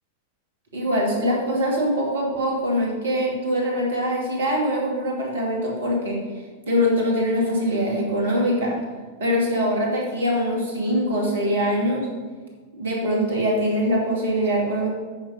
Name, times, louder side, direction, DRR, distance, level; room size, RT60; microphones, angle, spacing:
voice 1, 0.7-6.2 6.7-8.8 9.2-12.1 12.7-14.9, equal, 65° right, -2 dB, 2.4 m, -23 dB
8.7 x 5.9 x 5.4 m, 1.5 s
figure-of-eight pair, 90°, 0 cm